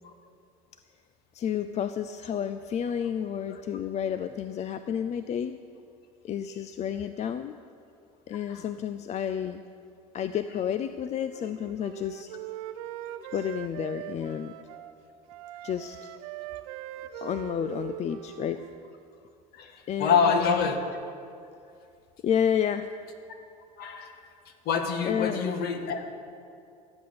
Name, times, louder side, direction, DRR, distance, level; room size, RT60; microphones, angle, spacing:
voice 1, 1.3-5.5 6.2-7.6 8.3-9.6 10.1-12.3 13.3-14.5 15.6-16.1 17.2-18.6 19.9-20.7 22.2-22.9 25.0-25.4, left 8 dB, 35° left, 11 dB, 0.5 m, -30 dB
Wind instrument woodwind instrument, 11.3-14.9 15.3-18.9, right 13 dB, 75° right, 0.7 m, -41 dB
voice 2, 19.5-21.0 23.8-24.3 24.6-26.0, left 6 dB, 55° left, 6 dB, 1.6 m, -27 dB
14.0 x 8.0 x 6.9 m, 2.4 s
hypercardioid pair, 80°, 19 cm